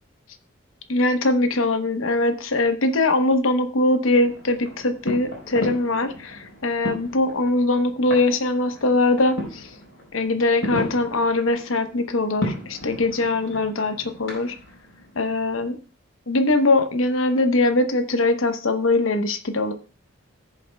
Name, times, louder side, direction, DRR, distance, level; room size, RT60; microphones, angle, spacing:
voice 1, 0.9-9.7 10.1-14.5 15.2-15.8 16.3-19.7, left 2 dB, 90° left, 8 dB, 0.9 m, -22 dB
sound 1, 4.1-15.6, equal, 75° left, 4.3 m, -35 dB
17.5 x 7.1 x 2.2 m, 0.35 s
head